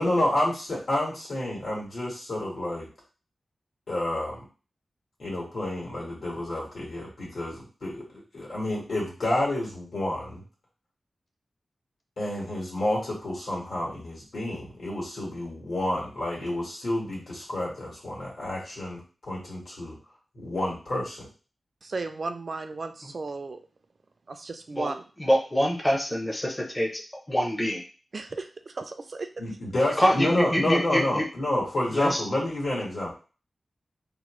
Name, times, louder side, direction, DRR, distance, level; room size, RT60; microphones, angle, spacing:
voice 1, 0.0-2.9 3.9-4.4 5.2-10.4 12.2-19.9 20.3-21.2 29.4-33.1, left 1 dB, 75° left, -5 dB, 1.5 m, -29 dB
voice 2, 21.8-23.6 24.3-25.0 28.1-29.3, right 3 dB, 55° right, 7 dB, 0.3 m, -35 dB
voice 3, 25.2-27.0 27.3-27.8 30.0-31.3 31.9-32.2, equal, 15° left, 0 dB, 0.5 m, -25 dB
2.9 x 2.0 x 3.0 m, 0.35 s
wide cardioid pair, 95°, 0 cm